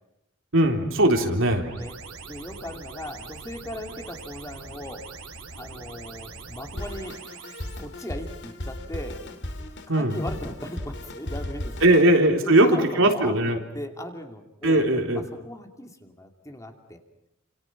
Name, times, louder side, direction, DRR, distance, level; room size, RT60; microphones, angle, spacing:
voice 1, 0.5-1.7 9.9-10.2 11.8-13.6 14.6-15.3, right 1 dB, 65° right, 4 dB, 3.7 m, -19 dB
sound 1, 1.0-7.8, right 3 dB, 90° right, 4.6 m, -42 dB
voice 2, 2.2-5.1 5.6-7.2 7.8-9.2 9.9-12.0 12.4-14.9 15.1-17.0, left 1 dB, 15° left, 4 dB, 2.7 m, -38 dB
Drum kit, 6.8-12.2, left 1 dB, 55° left, 2.7 m, -36 dB
30.0 x 28.0 x 6.0 m, 0.84 s
head